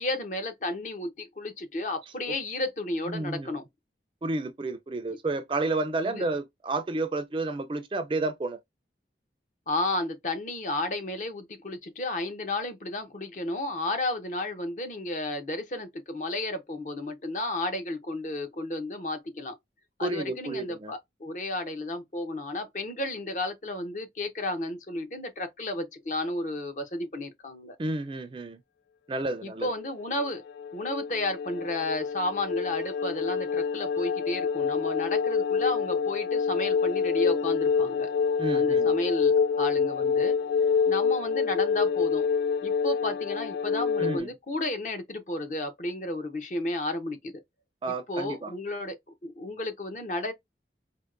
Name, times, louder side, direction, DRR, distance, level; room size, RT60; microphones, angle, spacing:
voice 1, 0.0-3.6 6.0-6.3 9.7-19.5 20.0-27.8 29.4-30.4 30.7-38.1 38.5-40.4 40.9-42.3 42.6-47.3 47.9-49.0 49.2-50.3, left 2 dB, 45° left, 0.7 m, -32 dB
voice 2, 3.1-3.5 4.2-8.6 20.0-20.9 27.8-28.6 29.1-29.7 38.4-39.0 44.0-44.3 47.8-48.5, right 2 dB, 30° right, 0.3 m, -31 dB
sound 1, 30.1-44.2, left 6 dB, 70° left, 0.3 m, -27 dB
4.4 x 2.1 x 2.4 m
head